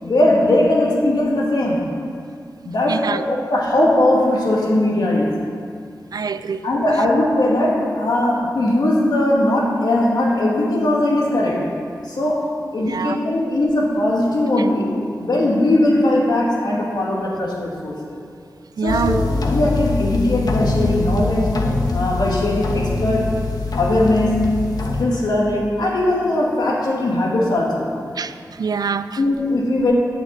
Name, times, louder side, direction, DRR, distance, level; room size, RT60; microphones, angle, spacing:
voice 1, 0.0-1.9 2.7-5.4 6.6-11.8 12.0-18.2 18.8-23.3 23.8-27.9 29.2-29.9, left 1 dB, 90° left, 2.0 m, -19 dB
voice 2, 2.9-3.2 6.1-6.7 12.8-13.2 18.8-19.2 28.2-29.2, right 6 dB, 70° right, 0.4 m, -25 dB
sound 1, 18.9-25.1, left 2 dB, 70° left, 1.1 m, -23 dB
8.9 x 6.5 x 8.0 m
wide cardioid pair, 85°, 7 cm